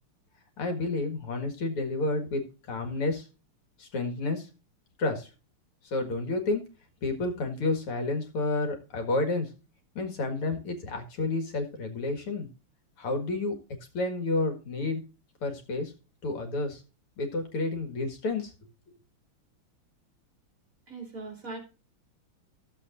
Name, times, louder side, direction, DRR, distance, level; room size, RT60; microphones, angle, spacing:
voice 1, 0.6-2.4 2.7-3.3 3.8-4.5 5.0-5.3 5.8-6.6 7.0-9.5 10.0-12.5 13.0-13.6 13.9-15.0 15.4-15.9 16.2-16.8 17.2-18.5, left 2 dB, 80° left, 4 dB, 2.7 m, -30 dB
voice 2, 20.9-21.6, right 3 dB, 40° right, 3 dB, 2.9 m, -39 dB
14.0 x 7.5 x 2.5 m, 0.30 s
omnidirectional pair, 2.4 m